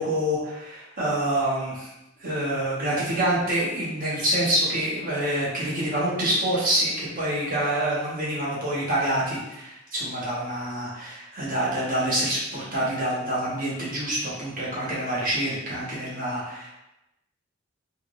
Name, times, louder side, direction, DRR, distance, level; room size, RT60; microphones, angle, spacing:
voice 1, 0.0-1.9 2.2-16.7, right 1 dB, 45° right, -7 dB, 1.3 m, -26 dB
3.4 x 2.6 x 3.1 m, 0.91 s
head